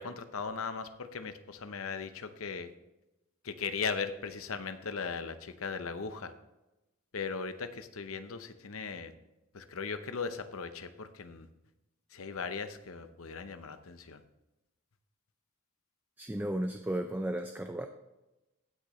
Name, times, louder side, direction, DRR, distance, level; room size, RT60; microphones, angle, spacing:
voice 1, 0.0-2.7 3.4-6.3 7.1-9.1 9.5-11.5 12.1-14.2, left 5 dB, 65° left, 10 dB, 0.7 m, -38 dB
voice 2, 16.2-17.9, right 1 dB, 10° right, 6 dB, 0.4 m, -34 dB
16.0 x 6.5 x 3.1 m, 0.98 s
head